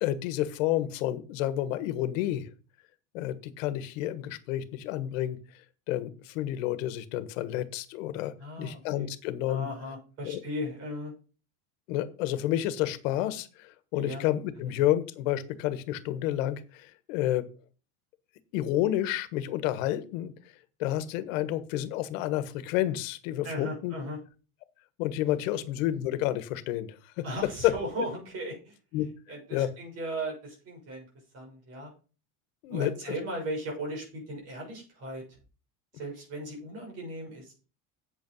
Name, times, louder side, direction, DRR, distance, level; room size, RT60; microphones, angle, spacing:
voice 1, 0.0-2.5 3.1-5.4 5.9-9.7 10.2-10.4 11.9-17.5 18.5-20.3 20.8-23.9 25.0-27.2 27.6-27.7 28.0-28.1 28.9-29.1 29.5-29.7 32.6-32.9, left 13 dB, 85° left, 13 dB, 1.4 m, -30 dB
voice 2, 8.4-9.1 9.5-11.1 13.9-14.2 23.4-24.2 25.5-25.6 27.2-28.8 29.3-31.1 31.3-31.9 32.7-35.4 35.9-37.5, equal, 40° right, 0 dB, 6.6 m, -37 dB
8.4 x 8.3 x 5.5 m, 0.36 s
cardioid pair, 170°, 38 cm